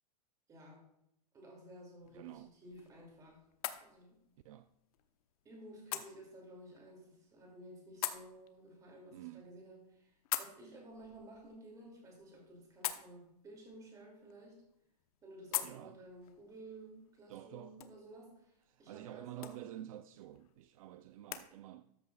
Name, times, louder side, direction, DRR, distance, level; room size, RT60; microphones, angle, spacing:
voice 1, 0.5-0.9 1.3-3.4 3.8-4.2 5.4-14.6 15.2-19.6, right 1 dB, 15° right, 2.6 m, -54 dB
sound 1, 2.0-21.5, left 12 dB, 65° left, 0.9 m, -47 dB
voice 2, 2.1-2.5 4.4-4.7 5.9-6.1 9.1-9.5 15.6-16.0 17.3-17.9 18.7-22.0, right 13 dB, 60° right, 0.5 m, -50 dB
13.5 x 9.7 x 2.4 m
supercardioid pair, 165°, 20 cm